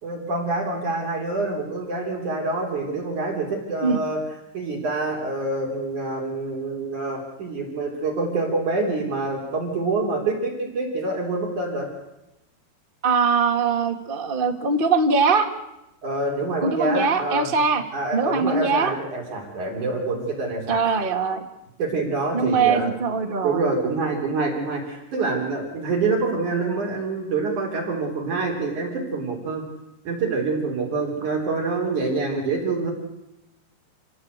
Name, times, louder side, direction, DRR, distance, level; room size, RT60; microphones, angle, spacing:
voice 1, 0.0-4.2 4.5-11.9 16.0-17.5 17.9-21.0 21.8-22.9 23.4-29.7 30.0-32.9, right 3 dB, 45° right, 1 dB, 4.8 m, -26 dB
voice 2, 13.0-15.5 16.6-17.8 18.1-18.9 20.7-21.4 22.3-23.6, right 4 dB, 60° right, 4 dB, 0.5 m, -21 dB
29.0 x 18.0 x 8.2 m, 0.91 s
omnidirectional pair, 5.1 m